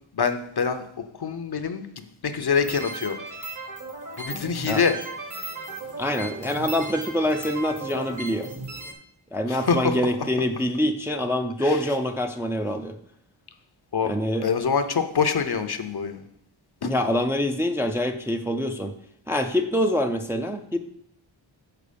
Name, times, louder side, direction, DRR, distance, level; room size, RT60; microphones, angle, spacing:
voice 1, 0.1-0.8 1.1-3.2 4.2-4.9 9.5-10.1 11.6-11.8 13.9-16.2 16.8-16.9, left 6 dB, 50° left, 8 dB, 0.6 m, -25 dB
sound 1, 2.6-8.9, right 3 dB, 40° right, 1.2 m, -36 dB
voice 2, 6.0-8.5 9.3-13.0 14.0-14.5 16.8-19.0 19.3-20.8, left 1 dB, 5° right, 4 dB, 0.4 m, -25 dB
6.7 x 4.6 x 5.1 m, 0.70 s
wide cardioid pair, 75°, 48 cm